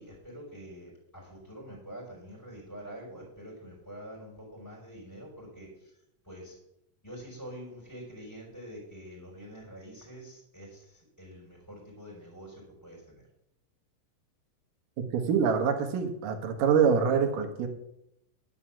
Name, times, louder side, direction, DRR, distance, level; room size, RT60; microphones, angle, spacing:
voice 1, 0.0-5.7 6.2-6.6 7.0-13.2, equal, 5° left, -5 dB, 4.2 m, -46 dB
voice 2, 15.1-17.7, right 6 dB, 70° right, 4 dB, 2.8 m, -25 dB
11.0 x 6.3 x 7.2 m, 0.80 s
omnidirectional pair, 4.3 m